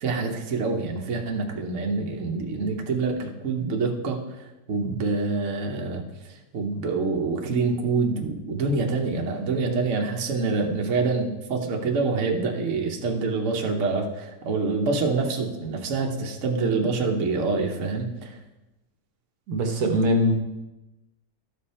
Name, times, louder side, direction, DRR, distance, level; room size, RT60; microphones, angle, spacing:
voice 1, 0.0-4.2 4.7-18.4, right 4 dB, 55° right, 1 dB, 1.3 m, -26 dB
voice 2, 19.5-20.3, equal, 70° right, 4 dB, 1.5 m, -22 dB
13.5 x 5.2 x 4.2 m, 1.0 s
omnidirectional pair, 1.7 m